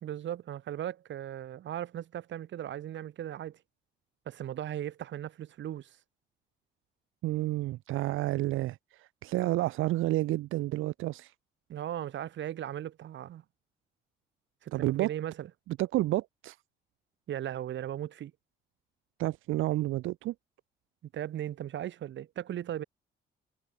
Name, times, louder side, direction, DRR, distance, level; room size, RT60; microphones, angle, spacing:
voice 1, 0.0-3.6 4.3-6.0 11.7-13.4 14.6-15.5 17.3-18.3 21.1-22.8, right 11 dB, 70° right, 2.1 m, -37 dB
voice 2, 7.2-11.3 14.7-15.1 15.8-16.6 19.2-20.3, right 16 dB, 90° right, 1.4 m, -30 dB
cardioid pair, 90°, 20 cm